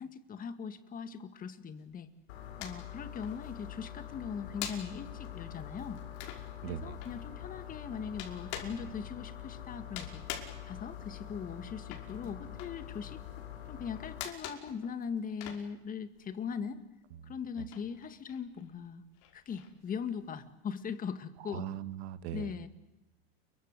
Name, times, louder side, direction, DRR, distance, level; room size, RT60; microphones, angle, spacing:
voice 1, 0.0-2.1 2.6-6.0 6.6-10.2 10.7-13.2 13.7-16.8 17.2-19.0 19.3-21.7 22.3-22.7, left 6 dB, 25° left, 10 dB, 2.0 m, -40 dB
sound 1, 1.8-2.9 3.2-16.5 16.8-20.5, left 10 dB, 60° left, 5.5 m, -46 dB
sound 2, 2.3-14.2, left 11 dB, 85° left, 5.2 m, -45 dB
voice 2, 6.6-6.9 21.5-22.5, right 11 dB, 80° right, 12 dB, 1.8 m, -39 dB
29.5 x 23.0 x 8.3 m, 0.98 s
supercardioid pair, 140°, 31 cm